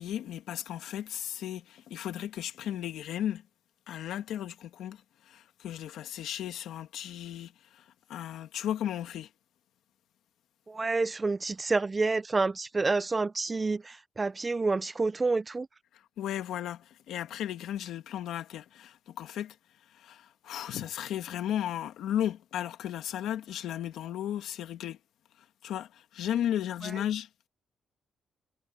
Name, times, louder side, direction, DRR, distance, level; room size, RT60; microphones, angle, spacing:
voice 1, 0.0-3.4 3.9-9.3 16.2-19.6 19.9-25.0 25.6-27.5, left 11 dB, 90° left, 2.0 m, -35 dB
voice 2, 10.7-15.7 26.8-26.9, right 3 dB, 20° right, 0.4 m, -28 dB
cardioid pair, 145°, 0 cm